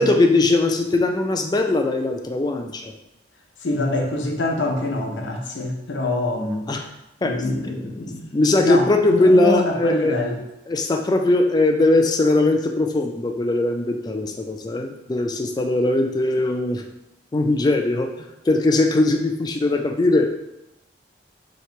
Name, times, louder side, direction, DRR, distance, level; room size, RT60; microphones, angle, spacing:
voice 1, 0.0-2.9 6.7-6.8 7.2-7.4 7.6-7.9 8.3-10.2 10.7-16.8 17.3-18.1 18.5-20.3, left 2 dB, 20° left, 4 dB, 0.3 m, -20 dB
voice 2, 3.6-6.7 7.2-10.4, left 2 dB, 85° left, 1 dB, 0.7 m, -25 dB
3.0 x 2.8 x 4.4 m, 0.88 s
head